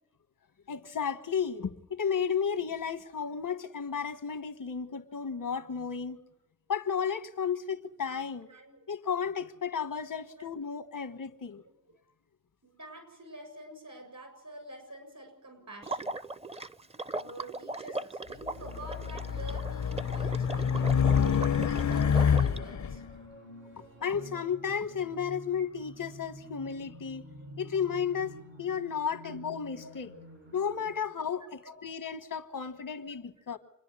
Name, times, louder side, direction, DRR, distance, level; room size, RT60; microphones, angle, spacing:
voice 1, 0.7-6.2 6.7-8.5 8.9-11.6 24.0-27.3 27.6-30.1 30.5-33.6, left 7 dB, 90° left, 1.3 m, -33 dB
voice 2, 8.5-8.8 10.4-10.5 11.6-11.7 12.6-16.1 17.2-23.0 27.4-27.5 29.0-29.4 29.8-29.9 31.0-31.1 31.4-31.7, equal, 70° right, 7.4 m, -47 dB
Water / Liquid, 15.8-22.6, right 2 dB, 20° right, 0.6 m, -39 dB
sound 1, 18.5-30.9, equal, 90° right, 8.0 m, -49 dB
Race car auto racing, 18.6-23.0, left 7 dB, 60° left, 0.7 m, -27 dB
27.5 x 10.5 x 9.6 m
cardioid pair, 40°, 32 cm